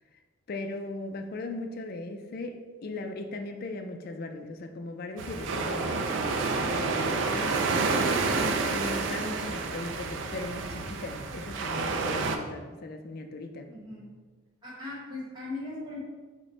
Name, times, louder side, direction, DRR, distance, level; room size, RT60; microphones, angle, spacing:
voice 1, 0.5-7.7 8.4-13.7, left 2 dB, 45° left, 6 dB, 0.4 m, -38 dB
sound 1, 5.2-12.4, right 4 dB, 60° right, 0.4 m, -29 dB
voice 2, 13.7-14.2 14.6-16.0, left 2 dB, 20° right, -5 dB, 1.2 m, -39 dB
5.9 x 2.1 x 4.1 m, 1.4 s
head